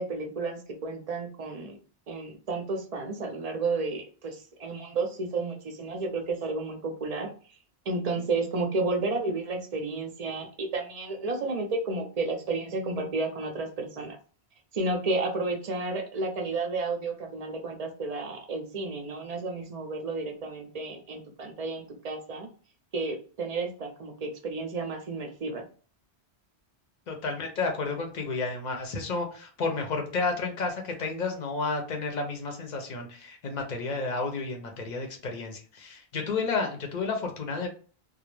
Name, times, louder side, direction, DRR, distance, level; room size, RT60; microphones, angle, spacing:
voice 1, 0.0-1.8 2.1-7.3 7.9-14.2 14.7-22.5 22.9-25.7, right 3 dB, 45° right, 4 dB, 0.5 m, -32 dB
voice 2, 27.1-37.7, left 4 dB, 50° left, 3 dB, 0.7 m, -31 dB
2.3 x 2.0 x 3.0 m, 0.40 s
omnidirectional pair, 1.1 m